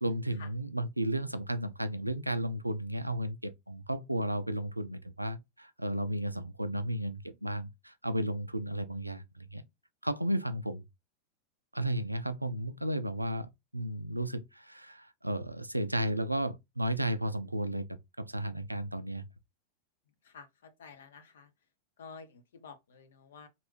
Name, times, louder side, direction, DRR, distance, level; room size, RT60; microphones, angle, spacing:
voice 1, 0.0-9.6 10.0-10.8 11.7-19.2, right 1 dB, 85° right, 0.3 m, -33 dB
voice 2, 20.2-21.5 22.0-23.5, left 5 dB, 60° left, 0.7 m, -51 dB
3.1 x 2.5 x 3.1 m
figure-of-eight pair, 90°, 0 cm